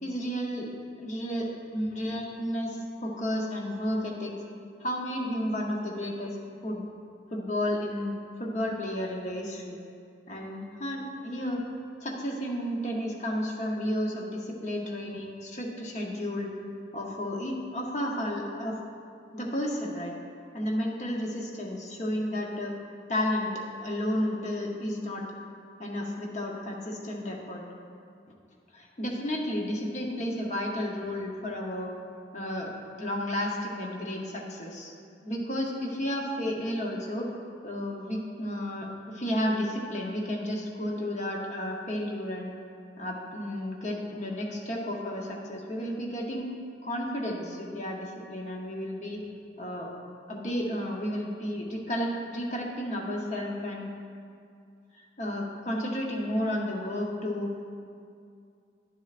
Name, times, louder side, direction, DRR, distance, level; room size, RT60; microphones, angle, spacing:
voice 1, 0.0-0.7 1.0-4.3 4.8-6.4 6.6-6.9 7.3-9.8 10.3-11.6 12.0-16.5 16.9-18.8 19.3-20.1 20.5-22.7 23.1-23.5 23.8-25.3 25.8-27.6 28.7-31.9 32.3-32.7 33.0-34.9 35.2-37.3 37.6-42.5 43.0-46.5 46.8-49.2 49.6-49.9 50.3-53.9 54.9-57.5, equal, 40° left, -1 dB, 0.8 m, -32 dB
11.0 x 7.3 x 2.5 m, 2.3 s
head